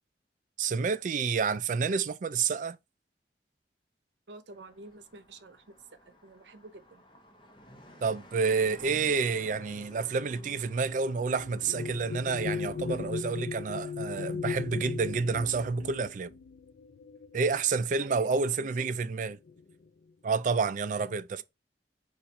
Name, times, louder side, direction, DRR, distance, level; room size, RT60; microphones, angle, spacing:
voice 1, 0.6-2.8 8.0-16.3 17.3-19.4 20.2-21.4, right 5 dB, 45° right, 0.3 m, -29 dB
voice 2, 4.3-7.0 18.0-18.9 21.0-21.4, right 2 dB, 80° right, 0.7 m, -50 dB
Car passing by, 4.5-13.1, equal, 30° left, 0.8 m, -54 dB
sound 1, 9.6-17.9 18.8-19.0 19.3-19.9, left 5 dB, 75° left, 0.4 m, -38 dB
4.0 x 2.5 x 4.3 m
head